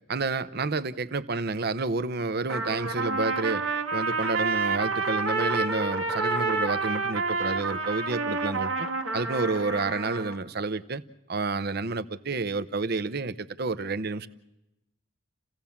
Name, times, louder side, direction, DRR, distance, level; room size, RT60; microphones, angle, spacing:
voice 1, 0.1-8.9 9.1-11.0 11.3-14.3, right 3 dB, 50° right, 0.8 m, -30 dB
Trumpet, 2.5-10.4, right 3 dB, 85° right, 1.8 m, -29 dB
29.5 x 16.5 x 7.2 m
head